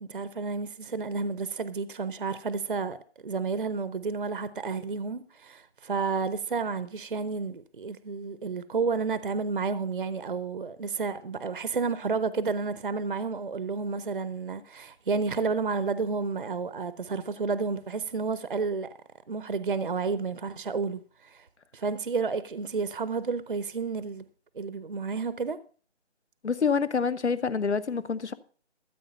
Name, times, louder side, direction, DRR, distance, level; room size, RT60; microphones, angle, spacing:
voice 1, 0.0-3.0 3.2-18.9 19.3-21.5 21.7-24.2 24.5-25.6, right 4 dB, 50° right, 0.7 m, -31 dB
voice 2, 26.4-28.3, left 5 dB, 75° left, 1.1 m, -27 dB
14.0 x 7.9 x 5.5 m
hypercardioid pair, 175°, 35 cm